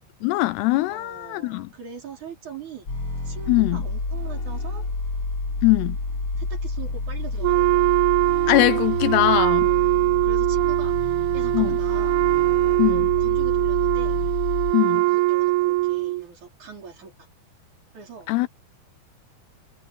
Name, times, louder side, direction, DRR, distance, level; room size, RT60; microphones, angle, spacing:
voice 1, 0.2-1.7 3.5-3.8 5.6-6.0 8.5-9.7 11.5-11.8 12.8-13.0 14.7-15.0 18.3-18.5, left 19 dB, 85° left, 2.6 m, -21 dB
voice 2, 0.9-2.9 3.2-4.8 6.4-7.9 9.6-12.2 12.8-14.2 14.9-17.3 17.9-18.3, right 6 dB, 45° right, 5.9 m, -41 dB
sound 1, 2.9-14.7, left 2 dB, 30° left, 6.2 m, -29 dB
Wind instrument woodwind instrument, 7.4-16.2, right 18 dB, 85° right, 2.2 m, -22 dB
omnidirectional pair, 4.8 m